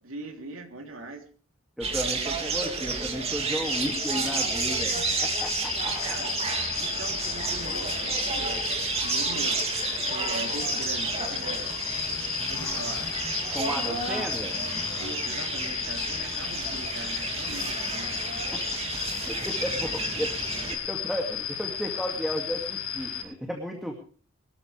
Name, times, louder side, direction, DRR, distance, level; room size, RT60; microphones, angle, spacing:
voice 1, 0.0-1.2 4.9-5.2 6.0-6.4 6.8-9.6 10.0-11.8 12.5-13.1 14.9-18.2 19.7-19.9, right 2 dB, 65° right, 2 dB, 3.2 m, -41 dB
voice 2, 1.8-5.0 5.2-6.1 13.5-14.6 18.5-18.6 19.2-23.9, equal, ahead, 2 dB, 2.3 m, -34 dB
sound 1, 1.8-20.8, right 4 dB, 30° right, 2.7 m, -31 dB
sound 2, 3.6-23.2, left 9 dB, 90° left, 6.0 m, -34 dB
sound 3, 9.8-21.5, left 1 dB, 15° left, 3.3 m, -49 dB
24.0 x 13.5 x 3.4 m, 0.39 s
head